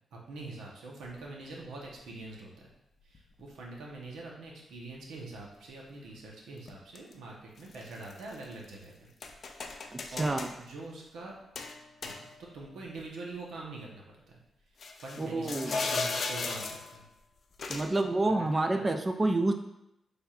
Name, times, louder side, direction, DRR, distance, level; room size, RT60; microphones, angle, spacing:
voice 1, 0.1-2.7 3.0-9.1 10.1-11.3 12.0-14.4 15.0-17.1 18.3-18.8, right 2 dB, 90° right, -2 dB, 0.9 m, -44 dB
sound 1, 1.0-1.1 2.1-2.2 3.1-3.4 6.7-7.1 7.6-8.7 9.2-10.6 11.5-12.6 13.0-13.1 14.8-17.0 17.6-18.0, left 4 dB, 55° left, 0.4 m, -37 dB
voice 2, 9.9-10.5 15.2-15.7 17.7-19.5, right 2 dB, 25° right, 5 dB, 0.3 m, -28 dB
5.6 x 3.4 x 2.4 m, 0.84 s
cardioid pair, 90°, 0 cm